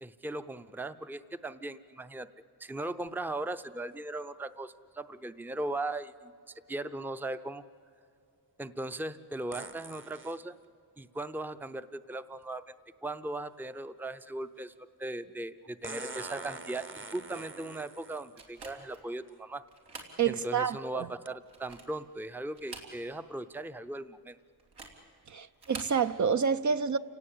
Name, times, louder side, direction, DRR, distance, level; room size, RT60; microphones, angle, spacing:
voice 1, 0.0-2.3 2.6-6.3 6.7-7.6 8.6-10.6 11.0-12.6 13.0-14.7 15.0-19.6 20.2-24.4, right 2 dB, 5° right, 0.6 m, -38 dB
sound 1, 3.1-3.2 9.5-10.4 12.4-12.5 15.8-18.3 19.3-19.4 20.0-20.3 21.3-21.4, right 3 dB, 30° right, 1.0 m, -44 dB
sound 2, 18.4-19.0 19.7-20.2 20.6-20.7 21.4-22.0 22.5-23.3 23.6-23.7 24.6-25.0 25.5-26.0, right 3 dB, 90° right, 3.5 m, -46 dB
voice 2, 20.2-21.1 25.3-27.0, right 6 dB, 50° right, 0.6 m, -28 dB
29.5 x 17.5 x 8.6 m
wide cardioid pair, 105°, 39 cm